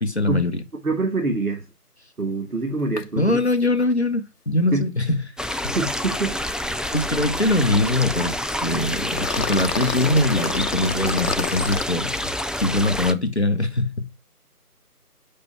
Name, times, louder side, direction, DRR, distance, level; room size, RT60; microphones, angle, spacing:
voice 1, 0.0-0.6 3.1-5.2 5.6-5.8 6.9-8.4 8.6-12.2 12.6-14.2, left 2 dB, 45° left, 0.9 m, -22 dB
voice 2, 0.8-1.6 2.2-3.4 4.7-4.9 5.7-6.4, right 3 dB, 70° right, 1.7 m, -25 dB
sound 1, 3.0-3.1 3.4-3.5 3.8-3.9 8.8-11.8, left 6 dB, 80° left, 0.8 m, -29 dB
sound 2, 5.4-13.1, left 1 dB, ahead, 0.3 m, -28 dB
5.5 x 5.1 x 5.6 m
figure-of-eight pair, 170°, 46 cm